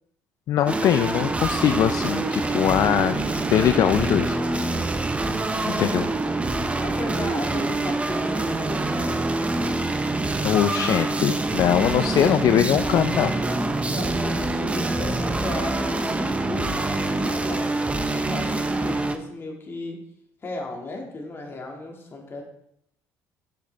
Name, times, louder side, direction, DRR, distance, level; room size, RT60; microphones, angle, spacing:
voice 1, 0.5-4.4 5.7-6.1 10.4-13.3, left 10 dB, 60° left, 9 dB, 0.4 m, -22 dB
sound 1, 0.7-19.2, right 2 dB, 20° right, 0.7 m, -25 dB
voice 2, 6.8-9.2 13.9-16.1 16.4-20.0 20.4-22.4, left 2 dB, 35° left, 0 dB, 2.0 m, -35 dB
7.7 x 6.6 x 3.4 m, 0.75 s
cardioid pair, 90°, 7 cm